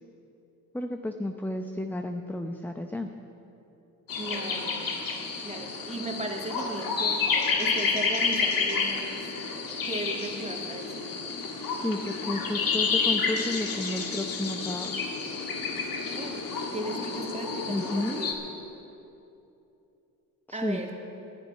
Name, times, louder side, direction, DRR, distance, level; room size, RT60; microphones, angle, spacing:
voice 1, 0.7-3.1 11.7-15.0 17.7-18.2 20.5-20.8, left 1 dB, 5° left, 5 dB, 0.8 m, -32 dB
sound 1, 4.1-18.3, left 5 dB, 55° left, 2.2 m, -30 dB
voice 2, 4.2-4.9 5.4-9.3 9.8-11.2 16.1-18.4 20.5-20.9, right 2 dB, 15° right, 1 dB, 2.3 m, -37 dB
10.5 x 10.0 x 9.5 m, 2.8 s
supercardioid pair, 65°, 40 cm